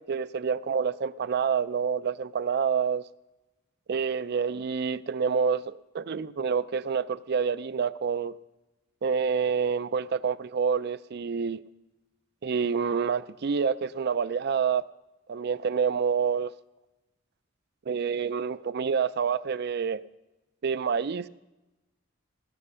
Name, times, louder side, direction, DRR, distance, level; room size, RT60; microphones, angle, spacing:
voice 1, 0.0-3.0 3.9-8.3 9.0-11.6 12.4-14.8 15.3-16.5 17.9-20.0 20.6-21.3, right 6 dB, 55° right, 0.4 m, -27 dB
18.5 x 8.9 x 5.6 m
head